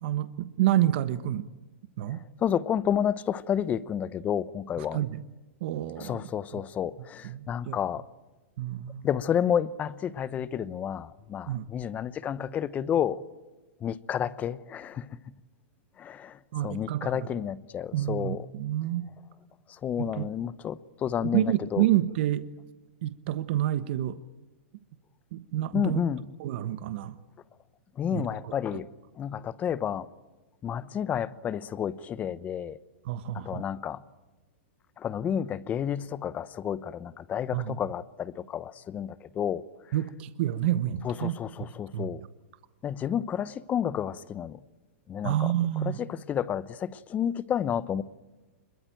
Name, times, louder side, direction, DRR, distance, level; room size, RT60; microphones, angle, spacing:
voice 1, 0.0-1.5 2.0-2.2 4.8-5.2 5.6-6.2 6.5-6.6 7.2-7.7 8.6-9.1 11.5-11.7 16.5-17.3 17.9-19.1 20.0-20.3 21.2-22.4 23.0-24.2 25.3-26.0 26.4-27.2 28.1-28.8 33.0-33.6 37.5-37.8 39.9-41.4 41.9-42.1 45.2-46.0, right 13 dB, 55° right, 1.3 m, -29 dB
voice 2, 2.4-5.0 6.0-8.0 9.0-13.2 13.8-15.1 16.0-16.4 16.6-18.4 19.8-21.8 25.7-26.2 28.0-28.9 29.2-30.1 30.6-32.8 33.3-34.0 35.0-39.6 41.0-42.2 42.8-44.6 45.1-45.5 45.8-48.0, left 9 dB, 20° left, 0.9 m, -30 dB
25.5 x 22.0 x 9.1 m
hypercardioid pair, 140°, 7 cm